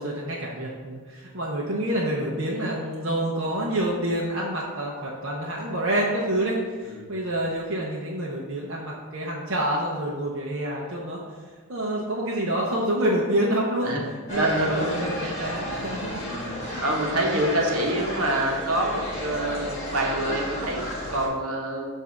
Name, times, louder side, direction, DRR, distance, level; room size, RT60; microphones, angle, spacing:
voice 1, 0.0-11.2 11.7-13.9 14.3-16.2 16.6-16.8, right 1 dB, 55° right, -4 dB, 0.8 m, -27 dB
sound 1, 14.3-21.3, equal, 30° left, 1.5 m, -32 dB
voice 2, 14.3-15.5 16.2-16.5 16.8-21.9, right 1 dB, 75° right, 0 dB, 1.1 m, -27 dB
7.3 x 2.7 x 5.8 m, 1.5 s
head